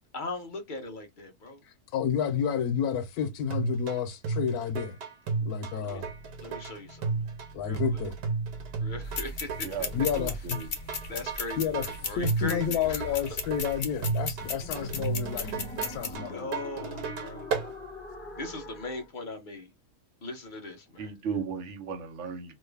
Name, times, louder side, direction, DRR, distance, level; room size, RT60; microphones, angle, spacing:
voice 1, 0.1-1.6 5.8-6.0 6.4-7.1 7.7-7.8 8.8-9.9 11.1-13.2 15.4-15.7 16.3-17.5 18.4-19.7 20.2-21.1, left 2 dB, 40° left, 0.8 m, -39 dB
voice 2, 1.9-5.0 5.4-6.1 7.6-8.1 9.9-10.6 11.6-11.9 12.1-16.5, left 8 dB, 85° left, 1.2 m, -30 dB
sound 1, 3.5-17.7, right 4 dB, 85° right, 1.3 m, -34 dB
sound 2, 5.9-19.1, equal, 10° left, 0.7 m, -45 dB
sound 3, 9.1-16.1, left 5 dB, 55° left, 1.2 m, -37 dB
voice 3, 9.6-10.7 21.0-22.6, right 5 dB, 55° right, 1.1 m, -36 dB
3.1 x 2.4 x 3.3 m
omnidirectional pair, 1.6 m